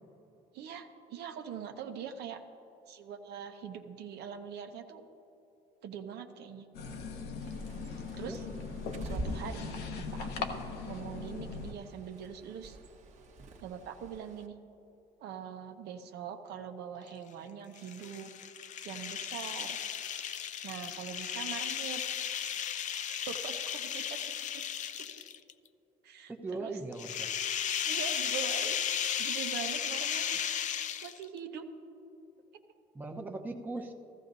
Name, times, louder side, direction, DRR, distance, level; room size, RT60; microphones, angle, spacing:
voice 1, 0.5-2.4 2.9-5.0 5.8-6.6 8.2-8.4 9.0-12.8 13.6-14.5 15.2-18.3 18.8-19.8 20.6-22.0 22.4-22.7 23.1-24.2 24.5-24.6 26.0-26.3 26.6-26.7 27.8-28.8 29.2-30.4 31.0-31.7, right 7 dB, 75° right, 5 dB, 0.9 m, -43 dB
sound 1, 6.7-11.7, left 4 dB, 70° left, 1.0 m, -39 dB
Bird, 7.4-14.5, right 2 dB, 45° right, 1.1 m, -46 dB
sound 2, 17.8-25.5 26.9-31.4, left 9 dB, 45° left, 0.4 m, -35 dB
voice 2, 26.3-27.3 32.9-33.9, right 3 dB, 10° right, 1 dB, 0.9 m, -39 dB
15.0 x 14.0 x 2.7 m, 3.0 s
cardioid pair, 110°, 17 cm